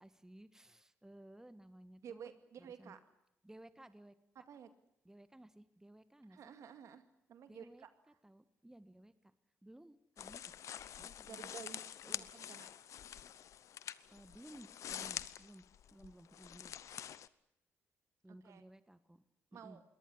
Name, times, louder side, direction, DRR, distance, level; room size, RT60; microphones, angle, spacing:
voice 1, 0.0-2.3 2.6-3.0 3.4-4.1 5.0-6.5 7.5-9.3 9.6-10.6 11.0-11.5 12.0-12.3 14.1-16.7 18.2-19.2 19.5-19.8, right 1 dB, 10° right, 13 dB, 1.7 m, -57 dB
voice 2, 2.0-3.0 4.5-4.7 6.3-7.0 7.3-7.9 11.3-12.7 16.0-16.1 18.4-18.6 19.5-19.8, right 8 dB, 65° right, 10 dB, 2.2 m, -52 dB
sound 1, 10.2-17.3, left 10 dB, 70° left, 0.9 m, -47 dB
22.0 x 18.5 x 9.9 m, 0.81 s
supercardioid pair, 60°, 6 cm